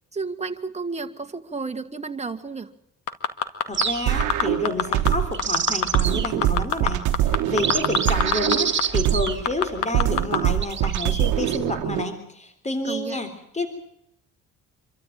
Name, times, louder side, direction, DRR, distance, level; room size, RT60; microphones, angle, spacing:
voice 1, 0.1-2.7 12.8-13.2, right 4 dB, 20° right, 6 dB, 2.0 m, -32 dB
sound 1, 3.1-3.8 4.2-5.1 5.4-6.0 6.2-8.5 8.8-8.9 9.3-10.4 10.8-10.9, left 9 dB, 90° left, 2.1 m, -23 dB
voice 2, 3.7-13.7, left 2 dB, 20° left, 9 dB, 3.7 m, -29 dB
sound 2, 3.7-4.4 5.1-6.4 7.0-7.1 7.5-9.8 10.6-11.6, right 6 dB, 40° right, 2.5 m, -28 dB
sound 3, 4.1-5.5 5.9-9.5 9.9-12.1, right 13 dB, 85° right, 1.2 m, -24 dB
26.0 x 14.0 x 9.3 m, 0.76 s
cardioid pair, 90°, 30 cm